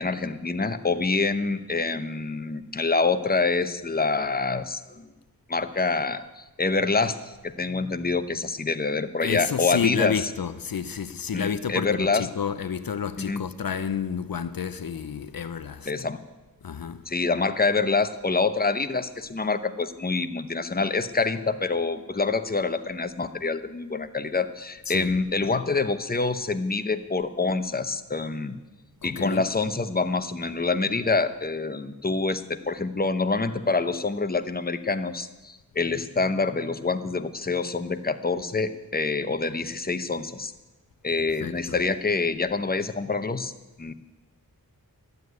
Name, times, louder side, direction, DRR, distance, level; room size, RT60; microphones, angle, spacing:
voice 1, 0.0-5.1 5.5-10.2 11.3-12.3 13.2-13.4 15.9-16.2 17.1-28.6 29.0-40.5 41.0-43.5 43.8-43.9, left 3 dB, 25° left, 0.8 m, -26 dB
voice 2, 9.2-15.9 16.6-17.0 24.8-25.1 29.0-29.5 41.4-41.9, left 7 dB, 70° left, 0.6 m, -30 dB
12.0 x 8.1 x 9.3 m
wide cardioid pair, 40°, 36 cm